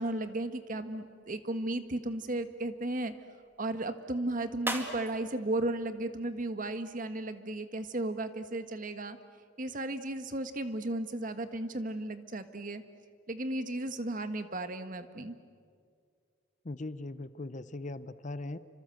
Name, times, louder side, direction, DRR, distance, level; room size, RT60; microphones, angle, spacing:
voice 1, 0.0-3.1 3.6-9.2 9.6-12.8 13.3-15.3, right 2 dB, 45° right, 9 dB, 1.5 m, -35 dB
sound 1, 1.0-7.0, right 1 dB, 10° right, 2.3 m, -44 dB
voice 2, 16.6-18.6, left 2 dB, 40° left, 14 dB, 0.8 m, -39 dB
29.5 x 25.5 x 7.8 m, 2.1 s
head